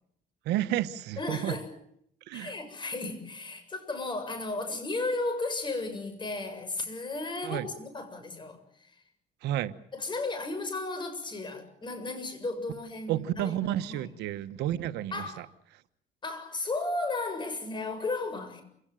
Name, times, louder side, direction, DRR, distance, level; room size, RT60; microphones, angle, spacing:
voice 1, 0.4-1.6 2.3-2.5 7.4-7.7 9.4-9.7 13.1-15.5, right 13 dB, 85° right, 13 dB, 1.2 m, -31 dB
voice 2, 1.2-1.7 2.3-9.0 9.9-14.1 15.1-15.4 16.2-18.6, left 2 dB, 25° left, 8 dB, 7.4 m, -34 dB
28.0 x 18.0 x 9.1 m, 0.71 s
cardioid pair, 110°, 17 cm